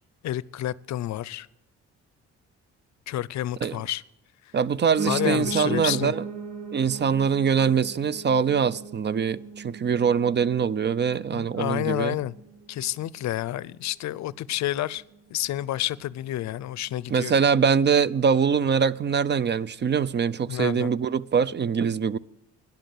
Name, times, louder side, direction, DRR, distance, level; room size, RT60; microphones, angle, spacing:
voice 1, 0.2-1.5 3.1-4.0 5.0-6.1 11.3-12.3 12.7-15.0 15.3-17.3 20.5-20.9, left 13 dB, 65° left, 0.5 m, -29 dB
voice 2, 4.5-6.2 6.7-12.1 17.1-22.2, right 6 dB, 35° right, 0.5 m, -23 dB
Piano, 5.0-14.1 14.5-15.6 15.9-16.0 16.2-16.3 16.6-16.7 17.2-17.3, right 4 dB, 75° right, 2.1 m, -37 dB
12.5 x 10.5 x 7.5 m
cardioid pair, 90°, 30 cm